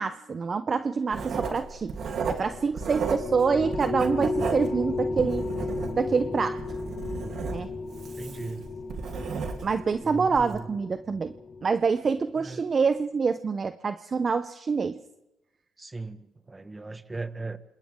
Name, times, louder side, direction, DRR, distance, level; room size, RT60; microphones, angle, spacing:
voice 1, 0.0-2.0 2.3-5.5 5.9-6.6 7.5-7.7 9.6-11.3 11.6-15.0, right 5 dB, 40° right, 11 dB, 0.8 m, -26 dB
Writing, 1.1-3.4 3.7-6.2 6.6-9.9 10.3-10.5, right 5 dB, 65° right, 3.3 m, -33 dB
sound 1, 2.4-12.2, left 3 dB, 40° left, 4.5 m, -34 dB
voice 2, 8.2-8.7 10.0-10.7 12.4-12.7 15.8-17.6, right 3 dB, 20° right, 10 dB, 1.7 m, -37 dB
28.0 x 27.5 x 3.8 m, 0.97 s
cardioid pair, 90°, 0 cm